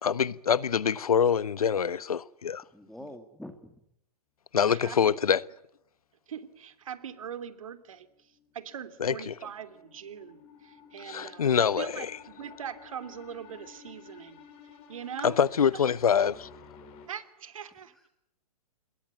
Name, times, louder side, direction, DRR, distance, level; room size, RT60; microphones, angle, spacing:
voice 1, 0.0-2.6 4.5-5.4 9.0-9.3 11.0-12.2 15.2-16.5, left 7 dB, 70° left, 1.1 m, -25 dB
voice 2, 2.7-3.8 17.7-18.1, left 1 dB, ahead, 2.1 m, -46 dB
voice 3, 4.6-5.2 6.3-8.1 8.5-12.1 12.4-14.4 14.9-15.4 17.1-17.9, right 8 dB, 60° right, 3.1 m, -41 dB
sound 1, 7.9-17.1, left 7 dB, 30° left, 5.5 m, -53 dB
27.5 x 22.0 x 9.6 m
figure-of-eight pair, 120°, 20 cm